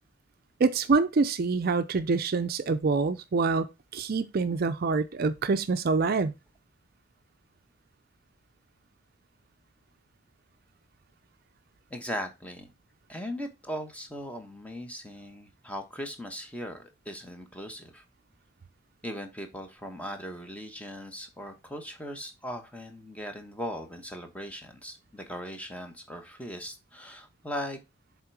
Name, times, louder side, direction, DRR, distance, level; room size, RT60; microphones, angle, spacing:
voice 1, 0.6-3.7 3.9-6.3, right 4 dB, 45° right, 0.4 m, -26 dB
voice 2, 11.9-12.7 13.1-18.0 19.0-27.8, equal, 5° left, 1.0 m, -39 dB
7.3 x 3.7 x 4.6 m
head